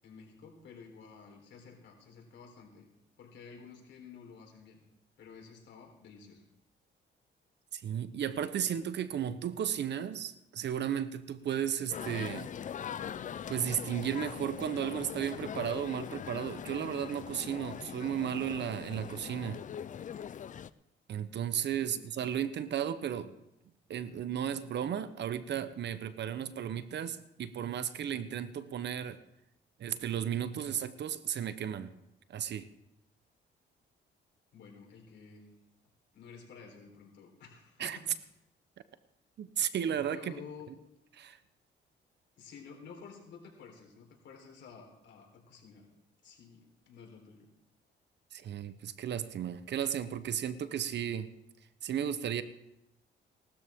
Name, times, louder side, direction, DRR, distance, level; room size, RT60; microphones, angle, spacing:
voice 1, 0.0-2.9 3.2-4.8 5.2-6.4 21.8-22.1 34.5-35.4 36.1-38.1 40.1-40.7 42.4-45.9 46.2-47.5, left 6 dB, 65° left, 0 dB, 3.9 m, -52 dB
voice 2, 7.7-12.5 13.5-19.6 21.1-23.4 23.9-29.2 29.8-31.9 32.3-32.7 37.8-38.0 39.4-40.3 41.1-41.4 48.3-51.3 51.8-52.4, right 9 dB, 60° right, 13 dB, 0.9 m, -34 dB
sound 1, 11.9-20.7, left 8 dB, 40° left, 0.4 m, -41 dB
18.0 x 13.0 x 3.6 m, 0.87 s
cardioid pair, 90°, 20 cm